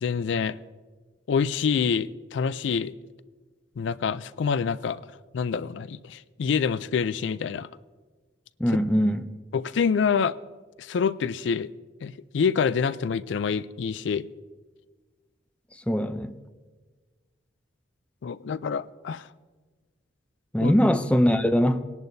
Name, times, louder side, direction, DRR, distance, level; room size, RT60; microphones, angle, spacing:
voice 1, 0.0-0.6 1.3-2.9 3.8-5.0 5.3-7.7 9.5-10.4 10.8-11.7 12.0-14.3 18.2-19.3 20.6-20.7, left 6 dB, 70° left, 0.4 m, -26 dB
voice 2, 8.6-9.2 15.9-16.4 20.5-21.8, equal, 5° left, 0.5 m, -21 dB
20.5 x 10.5 x 2.6 m
head